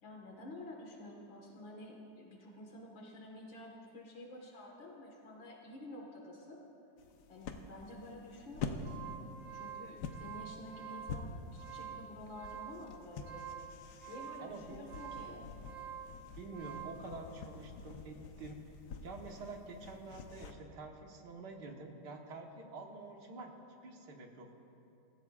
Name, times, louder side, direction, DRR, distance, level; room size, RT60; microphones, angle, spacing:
voice 1, 0.0-6.6 7.3-9.2 9.5-13.5 14.1-15.5, left 1 dB, 85° left, -1 dB, 2.4 m, -50 dB
sound 1, 7.0-20.5, left 5 dB, 65° left, 1.3 m, -47 dB
sound 2, 8.6-17.0, right 9 dB, 35° right, 0.5 m, -48 dB
voice 2, 14.4-15.0 15.2-15.6 16.4-18.7 19.0-23.5 23.8-24.5, right 3 dB, 65° right, 2 dB, 1.9 m, -48 dB
27.0 x 15.0 x 2.4 m, 2.9 s
omnidirectional pair, 2.0 m